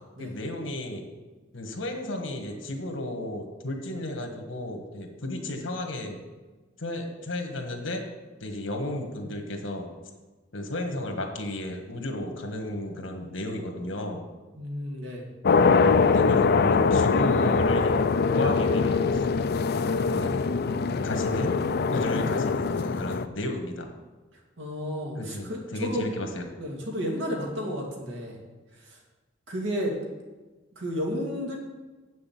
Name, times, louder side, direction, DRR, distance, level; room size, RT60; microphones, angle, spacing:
voice 1, 0.2-1.0 1.5-6.2 6.8-8.0 8.4-9.9 10.5-14.2 16.1-19.2 20.0-20.4 21.0-21.5 21.9-23.9 25.2-26.5, left 1 dB, 80° left, 4 dB, 1.6 m, -33 dB
voice 2, 14.6-15.3 24.6-26.1 26.6-28.4 28.8-29.0 29.5-30.0 30.8-31.6, equal, 75° right, -1 dB, 2.4 m, -32 dB
sound 1, 15.4-23.3, left 4 dB, 55° left, 0.5 m, -23 dB
7.8 x 6.5 x 7.7 m, 1.2 s
head